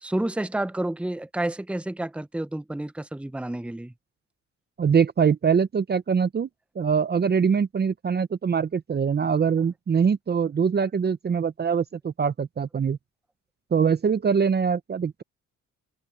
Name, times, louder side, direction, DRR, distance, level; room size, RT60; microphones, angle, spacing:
voice 1, 0.0-3.9, right 1 dB, 5° right, 0.9 m, -30 dB
voice 2, 4.8-6.5 6.8-13.0 13.7-15.2, right 6 dB, 35° right, 0.8 m, -23 dB
cardioid pair, 90°, 30 cm